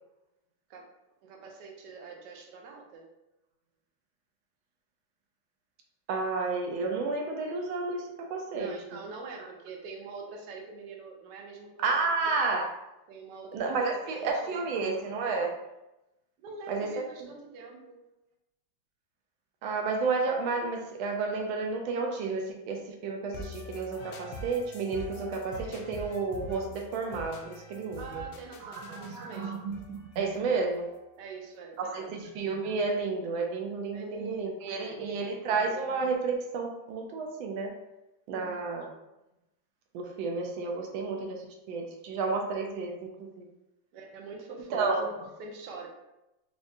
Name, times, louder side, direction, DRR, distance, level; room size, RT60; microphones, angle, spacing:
voice 1, 1.2-3.1 8.5-12.1 13.1-14.6 16.4-18.0 28.0-29.7 31.2-32.1 33.9-35.3 38.3-38.6 43.9-45.1 45.4-45.9, right 4 dB, 70° right, 1 dB, 1.2 m, -44 dB
voice 2, 6.1-8.7 11.8-12.7 13.5-15.6 16.7-16.9 19.6-28.2 28.6-30.9 31.8-37.7 38.3-38.9 39.9-43.5 44.7-45.1, right 4 dB, 85° right, 2 dB, 1.4 m, -31 dB
sound 1, 23.3-31.2, left 1 dB, 90° left, 1.4 m, -45 dB
5.1 x 2.4 x 2.5 m, 0.94 s
omnidirectional pair, 2.2 m